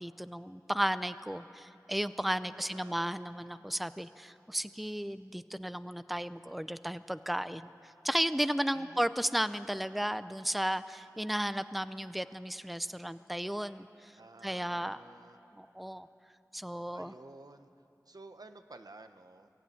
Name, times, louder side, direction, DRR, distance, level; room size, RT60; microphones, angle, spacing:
voice 1, 0.0-14.1 14.4-15.0 15.6-16.1 16.5-17.1, equal, ahead, 13 dB, 0.5 m, -34 dB
voice 2, 2.5-3.2 8.7-9.1 14.2-15.4 16.9-17.7 18.1-19.5, right 2 dB, 75° right, 8 dB, 0.9 m, -53 dB
22.5 x 15.0 x 9.4 m, 2.9 s
wide cardioid pair, 45°, 7 cm